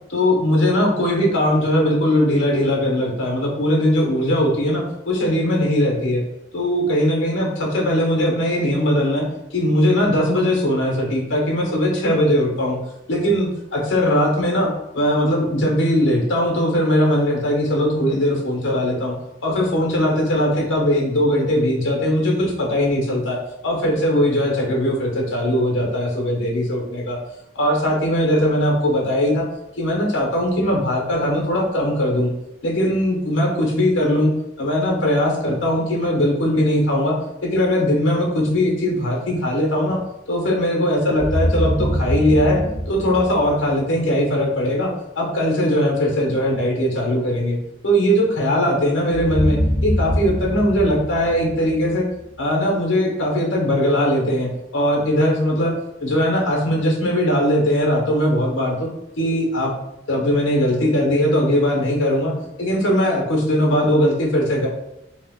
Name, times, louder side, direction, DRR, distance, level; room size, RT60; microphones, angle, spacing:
voice 1, 0.1-6.2 6.5-12.8 13.1-19.2 19.4-27.2 27.6-29.5 29.8-32.3 32.6-34.3 34.6-37.2 37.4-40.0 40.3-42.6 42.9-47.6 47.8-52.1 52.4-55.7 56.0-58.9 59.2-59.7 60.1-62.3 62.6-64.7, equal, 80° left, 0 dB, 0.7 m, -20 dB
sound 1, 41.1-44.1 49.1-52.3, equal, 25° right, 0.7 m, -24 dB
2.4 x 2.1 x 3.5 m, 0.87 s
head